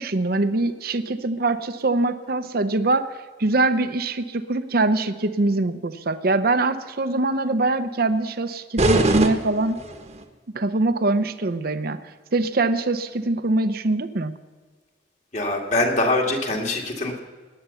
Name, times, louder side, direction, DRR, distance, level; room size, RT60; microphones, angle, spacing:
voice 1, 0.0-3.1 3.4-9.8 10.5-14.3, right 2 dB, 50° right, 10 dB, 0.7 m, -23 dB
sound 1, 8.8-10.2, right 2 dB, 35° right, 1.1 m, -22 dB
voice 2, 15.3-17.2, left 2 dB, 40° left, 1 dB, 2.3 m, -23 dB
18.5 x 10.0 x 7.0 m, 1.5 s
head